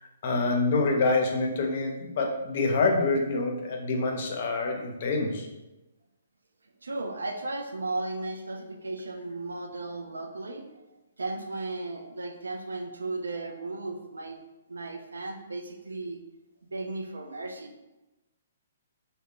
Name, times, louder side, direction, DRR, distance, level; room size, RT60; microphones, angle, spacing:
voice 1, 0.0-5.5, left 3 dB, 50° left, 2 dB, 0.5 m, -26 dB
voice 2, 6.8-10.8 11.2-14.4 14.7-16.2 16.7-17.7, right 2 dB, 90° right, 4 dB, 0.3 m, -35 dB
2.3 x 2.0 x 3.6 m, 1.0 s
hypercardioid pair, 140°, 0 cm